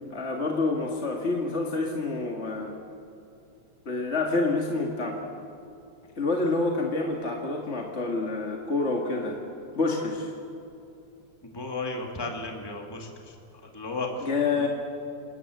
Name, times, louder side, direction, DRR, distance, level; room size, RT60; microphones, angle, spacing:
voice 1, 0.1-2.7 3.9-5.2 6.2-9.4 9.8-10.3 14.2-14.7, left 3 dB, 30° left, 0 dB, 1.7 m, -27 dB
voice 2, 11.5-13.1 13.7-14.3, left 3 dB, 10° left, 1 dB, 2.2 m, -33 dB
28.5 x 20.0 x 8.0 m, 2.6 s
omnidirectional pair, 3.4 m